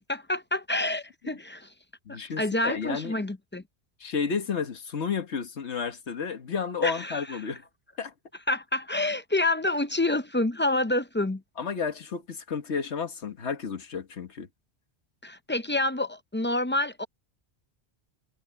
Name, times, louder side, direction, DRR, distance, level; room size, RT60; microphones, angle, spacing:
voice 1, 0.1-1.7 2.1-3.6 6.8-7.4 8.5-11.4 15.2-17.1, left 2 dB, 15° left, 0.4 m, -28 dB
voice 2, 2.0-3.1 4.0-7.6 8.0-8.1 11.6-14.5, left 6 dB, 85° left, 1.7 m, -32 dB
omnidirectional pair, 1.1 m